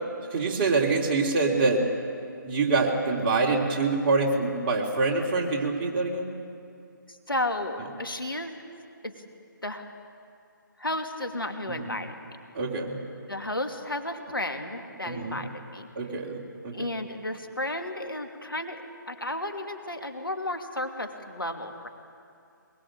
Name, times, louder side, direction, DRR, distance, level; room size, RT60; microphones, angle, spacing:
voice 1, 0.3-1.8 2.4-6.3 11.7-11.9 12.5-13.0 15.0-15.4 15.9-16.9, right 3 dB, 30° right, -1 dB, 3.3 m, -25 dB
voice 2, 7.1-8.5 9.0-9.1 9.6-9.9 10.8-12.1 13.3-15.9 16.7-21.9, left 1 dB, 85° left, 5 dB, 2.7 m, -33 dB
23.0 x 21.5 x 9.0 m, 2.4 s
figure-of-eight pair, 145°, 11 cm